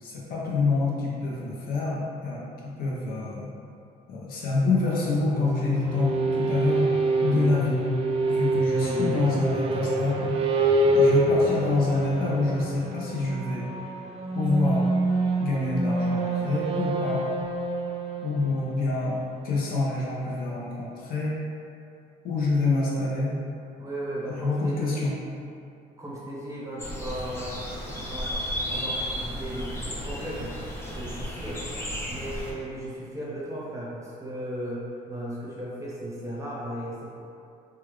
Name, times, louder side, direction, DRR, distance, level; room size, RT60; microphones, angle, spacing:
voice 1, 0.0-3.5 4.1-6.9 7.2-7.8 8.3-10.3 10.9-13.7 14.3-14.9 15.4-17.3 18.2-21.3 22.2-23.3 24.3-25.1 28.7-28.8, left 3 dB, 60° left, -5 dB, 0.8 m, -27 dB
sound 1, 5.0-19.6, right 2 dB, 35° right, 0.4 m, -26 dB
voice 2, 8.7-9.2 22.8-22.9 23.8-25.1 26.0-27.6 27.9-28.4 28.7-30.5 30.8-31.6 32.1-37.1, right 1 dB, 20° right, -6 dB, 0.8 m, -36 dB
sound 2, 26.8-32.5, equal, 15° left, 0.6 m, -33 dB
3.3 x 2.3 x 3.2 m, 2.5 s
cardioid pair, 110°, 17 cm